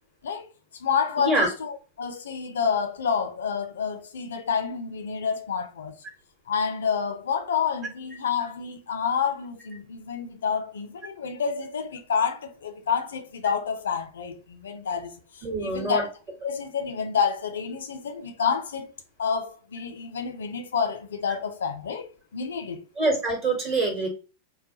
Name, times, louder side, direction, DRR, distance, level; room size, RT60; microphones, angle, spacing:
voice 1, 0.7-5.9 6.5-16.1 16.4-18.9 19.2-22.8, left 6 dB, 65° left, 0.6 m, -29 dB
voice 2, 15.4-16.0 23.0-24.1, right 2 dB, 35° right, 1.0 m, -24 dB
3.9 x 2.2 x 2.8 m
figure-of-eight pair, 90°, 0 cm